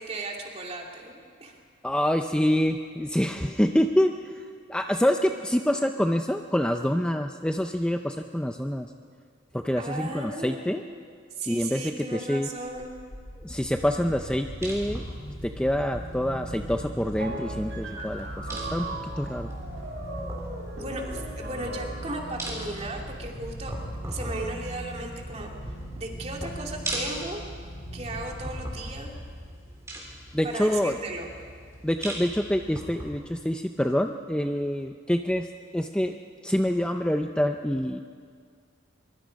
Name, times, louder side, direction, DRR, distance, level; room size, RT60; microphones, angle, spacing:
voice 1, 0.0-1.6 9.8-11.0 11.4-12.9 20.8-23.8 24.1-27.4 27.9-29.2 30.4-31.3, right 2 dB, 35° right, 0 dB, 2.5 m, -36 dB
voice 2, 1.8-4.1 4.7-8.9 9.5-10.8 11.5-12.5 13.4-15.0 15.6-18.9 19.2-19.5 30.3-30.9 31.8-35.5 35.7-36.2 36.4-38.0, equal, 5° left, 5 dB, 0.5 m, -26 dB
sound 1, 12.6-29.8, equal, 60° left, 4.6 m, -41 dB
sound 2, 13.5-33.1, right 1 dB, 15° right, 3.7 m, -40 dB
sound 3, 17.2-22.4, right 2 dB, 85° right, 4.9 m, -39 dB
23.5 x 23.0 x 5.3 m, 2.1 s
head